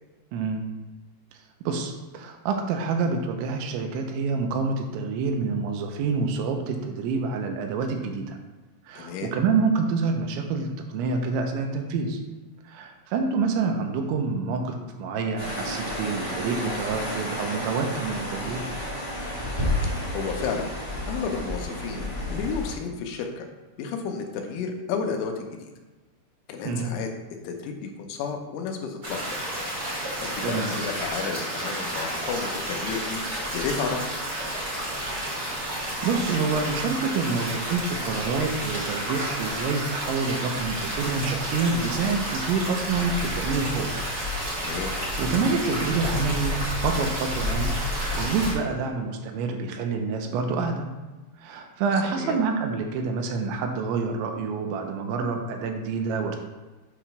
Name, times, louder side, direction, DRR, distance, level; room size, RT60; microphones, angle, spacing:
voice 1, 0.3-0.6 1.6-8.4 8.9-12.2 12.7-18.6 26.6-26.9 30.4-30.7 36.0-43.9 45.2-50.9 51.4-56.4, right 4 dB, 80° right, 4 dB, 2.9 m, -27 dB
voice 2, 9.0-9.3 19.8-20.7 21.1-23.5 23.8-25.7 26.5-27.1 27.4-29.2 30.2-33.2 33.5-34.1 44.6-45.0 52.1-52.4, left 5 dB, 85° left, 3 dB, 3.3 m, -32 dB
sound 1, 15.4-22.7, left 1 dB, 40° left, 0.4 m, -31 dB
sound 2, 29.0-48.5, equal, 45° right, 1.2 m, -30 dB
8.4 x 3.0 x 5.8 m, 1.2 s
omnidirectional pair, 5.4 m